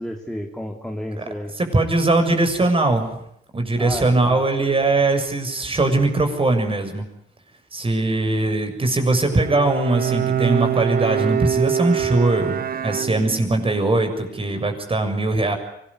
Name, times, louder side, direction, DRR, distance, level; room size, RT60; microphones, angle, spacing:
voice 1, 0.0-1.5 3.8-4.4, equal, 5° left, 2 dB, 3.3 m, -31 dB
voice 2, 1.6-3.2 3.5-7.0 7.7-15.6, right 2 dB, 25° right, 6 dB, 7.0 m, -20 dB
Bowed string instrument, 9.3-13.7, right 10 dB, 50° right, 1.0 m, -24 dB
25.0 x 20.0 x 9.9 m, 0.77 s
cardioid pair, 90°, 20 cm